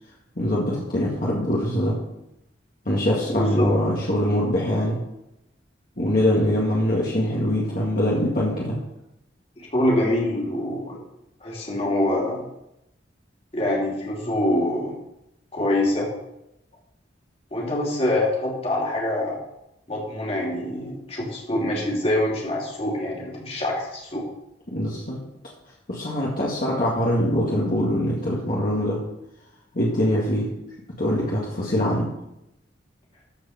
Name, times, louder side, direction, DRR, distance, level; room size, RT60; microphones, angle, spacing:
voice 1, 0.4-2.0 2.9-5.0 6.0-8.8 24.7-25.2 25.9-29.0 29.7-30.5 31.0-32.1, left 1 dB, 50° left, -5 dB, 1.9 m, -23 dB
voice 2, 3.3-3.7 9.6-11.0 11.4-12.4 13.5-14.9 15.5-16.1 17.5-19.4 19.9-24.2, left 1 dB, 35° left, -3 dB, 2.9 m, -25 dB
14.0 x 5.0 x 5.7 m, 0.87 s
head